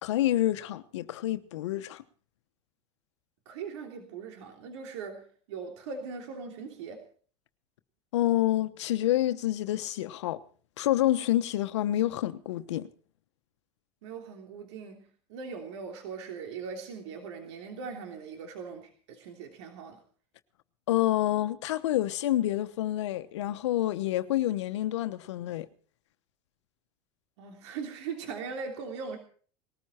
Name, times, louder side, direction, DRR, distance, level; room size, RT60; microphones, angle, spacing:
voice 1, 0.0-2.0 8.1-10.4 10.8-12.9 20.9-25.7, left 14 dB, 85° left, 1.1 m, -28 dB
voice 2, 3.4-7.0 14.0-20.0 27.4-29.2, right 5 dB, 80° right, 3.2 m, -40 dB
20.0 x 14.0 x 4.4 m
supercardioid pair, 100°, 15 cm